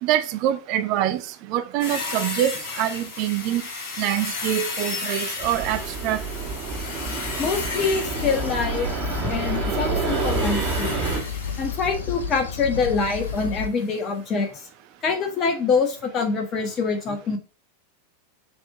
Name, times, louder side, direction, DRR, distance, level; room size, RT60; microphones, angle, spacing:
voice 1, 0.0-3.6 4.0-6.2, right 12 dB, 40° right, 0.5 m, -25 dB
sound 1, 1.8-11.9 13.2-13.4 13.8-13.9, left 3 dB, 50° left, 2.7 m, -34 dB
Fixed-wing aircraft airplane, 5.4-11.2, right 4 dB, 25° right, 1.8 m, -28 dB
voice 2, 7.3-8.9 9.2-10.9 11.6-14.5 15.0-17.4, left 4 dB, 30° left, 1.7 m, -25 dB
sound 2, 8.2-13.7, left 6 dB, 70° left, 0.8 m, -32 dB
6.1 x 3.6 x 4.4 m
figure-of-eight pair, 90°, 0 cm